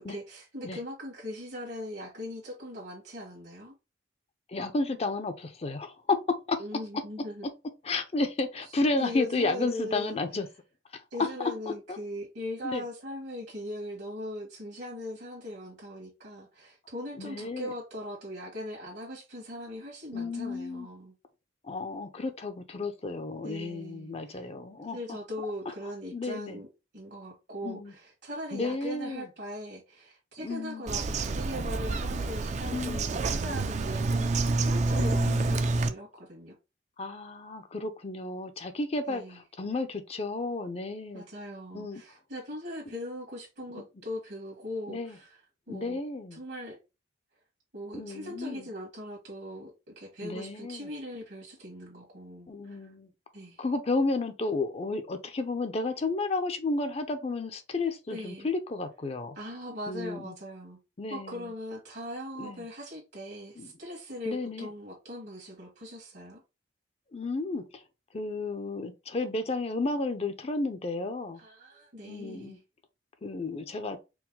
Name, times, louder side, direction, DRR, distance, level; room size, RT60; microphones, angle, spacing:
voice 1, 0.0-3.8 6.6-7.5 8.9-10.2 11.1-21.1 23.4-24.5 24.8-26.7 26.9-36.6 39.1-39.4 41.1-45.4 45.7-46.0 46.3-46.8 47.7-52.9 53.3-53.6 58.1-58.5 59.3-60.8 61.1-66.4 71.4-72.6, left 1 dB, 65° right, 1.5 m, -40 dB
voice 2, 4.5-6.2 6.5-6.6 7.8-10.5 10.9-11.5 11.9-12.0 12.6-12.8 17.2-17.7 20.1-20.9 21.6-25.0 26.1-26.6 27.6-27.9 28.5-29.3 30.4-30.8 32.7-33.0 34.2-34.3 35.0-35.7 37.0-41.2 41.7-42.0 43.7-43.8 44.9-45.2 45.7-46.4 47.9-48.7 50.2-50.9 52.5-53.1 53.6-59.3 59.9-60.3 61.0-61.5 62.4-62.7 63.6-63.7 64.3-64.7 67.1-67.8 68.1-71.4 72.0-72.6 73.2-74.0, left 3 dB, 35° left, 0.5 m, -32 dB
Bird vocalization bird call bird song, 30.9-35.9, right 3 dB, 40° right, 0.4 m, -28 dB
4.6 x 2.1 x 3.7 m
head